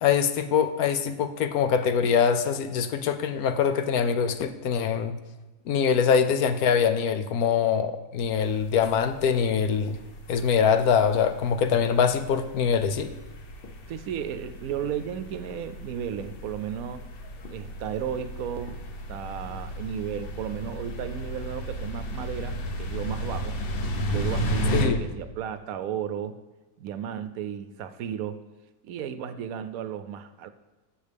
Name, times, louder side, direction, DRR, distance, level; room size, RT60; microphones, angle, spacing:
voice 1, 0.0-5.1 5.7-10.0 10.3-13.1 24.7-25.0, left 7 dB, 75° left, 9 dB, 1.1 m, -23 dB
sound 1, 8.2-24.9, equal, 45° left, 0.9 m, -34 dB
voice 2, 13.9-17.0 17.5-18.8 19.1-23.6 24.1-26.4 26.8-28.4 28.8-30.5, right 9 dB, 75° right, 11 dB, 1.0 m, -34 dB
13.0 x 7.3 x 3.5 m, 1.2 s
omnidirectional pair, 1.6 m